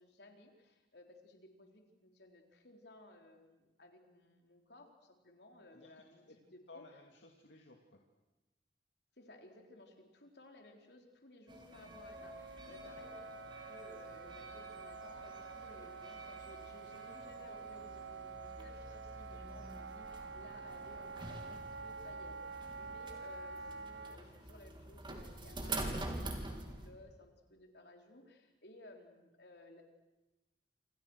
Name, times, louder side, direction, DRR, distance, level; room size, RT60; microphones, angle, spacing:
voice 1, 0.0-7.0 9.2-13.4 13.7-29.8, left 1 dB, 65° left, 3 dB, 4.2 m, -58 dB
voice 2, 5.7-6.4 6.7-8.0, left 2 dB, 80° left, 1 dB, 2.5 m, -58 dB
sound 1, 11.5-26.9, right 2 dB, 25° right, 3.5 m, -47 dB
Wind instrument woodwind instrument, 12.1-24.2, right 5 dB, 80° right, 0.9 m, -48 dB
28.0 x 27.5 x 6.5 m, 1.0 s
head